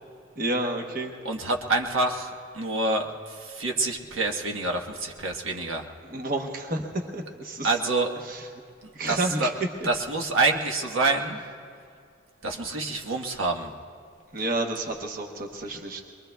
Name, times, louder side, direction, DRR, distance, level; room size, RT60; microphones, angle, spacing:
voice 1, 0.4-1.2 6.1-7.8 8.2-8.5 8.9-9.5 14.3-16.0, right 2 dB, 45° right, 3 dB, 1.0 m, -30 dB
voice 2, 1.2-5.8 7.6-8.1 9.1-9.5 9.8-11.4 12.4-13.7, right 2 dB, 90° right, 1 dB, 1.3 m, -27 dB
23.5 x 22.5 x 2.3 m, 2.4 s
head